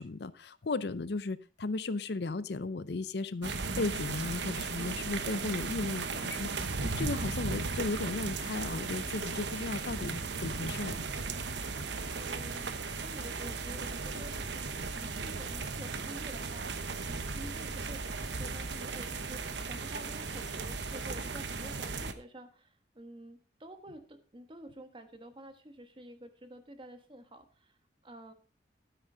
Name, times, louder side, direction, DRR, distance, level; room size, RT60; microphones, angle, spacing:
voice 1, 0.0-11.0, left 3 dB, 65° left, 15 dB, 0.6 m, -35 dB
sound 1, 3.4-22.1, right 4 dB, 75° right, 1.1 m, -36 dB
voice 2, 11.2-11.8 12.1-27.8 28.0-28.3, right 1 dB, 30° right, 8 dB, 1.3 m, -49 dB
12.5 x 9.2 x 3.9 m, 0.35 s
head